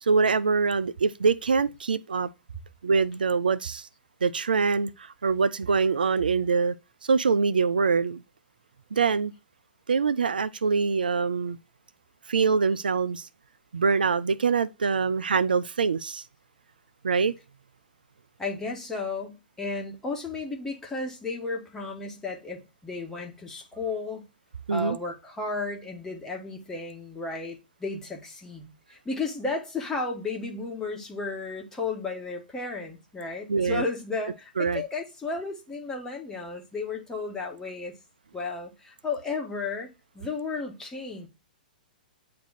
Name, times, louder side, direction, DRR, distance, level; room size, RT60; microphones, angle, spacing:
voice 1, 0.0-2.3 2.8-3.9 4.2-6.7 7.0-8.2 8.9-9.3 9.9-11.6 12.3-13.3 13.7-16.2 17.0-17.3 24.7-25.0 33.5-33.8 34.6-34.8, right 5 dB, 80° right, 0.4 m, -24 dB
voice 2, 18.4-24.3 24.7-38.0 38.3-39.9 40.1-41.3, left 3 dB, 10° left, 1.8 m, -33 dB
9.1 x 3.2 x 4.1 m
figure-of-eight pair, 110°, 5 cm